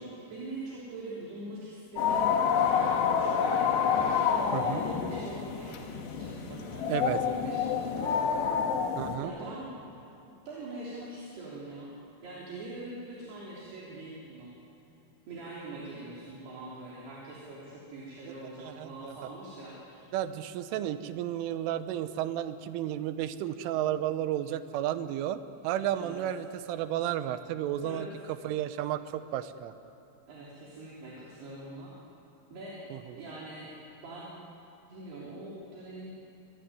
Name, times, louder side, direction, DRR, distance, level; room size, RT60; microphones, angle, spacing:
voice 1, 0.0-3.7 4.0-8.9 9.2-9.7 10.5-11.9 12.2-14.5 15.3-20.1 25.9-26.2 27.8-28.1 30.3-31.9 32.5-32.8 33.2-33.7 34.0-34.3 34.9-36.2, right 2 dB, 60° right, -5 dB, 5.2 m, -43 dB
sound 1, 2.0-9.2, left 7 dB, 65° left, 3.6 m, -28 dB
voice 2, 4.5-4.8 6.9-7.2 9.0-9.3 18.3-19.2 20.1-28.1 28.4-29.7 32.9-33.2, right 11 dB, 90° right, 11 dB, 3.5 m, -33 dB
25.0 x 21.5 x 9.7 m, 3.0 s
omnidirectional pair, 5.5 m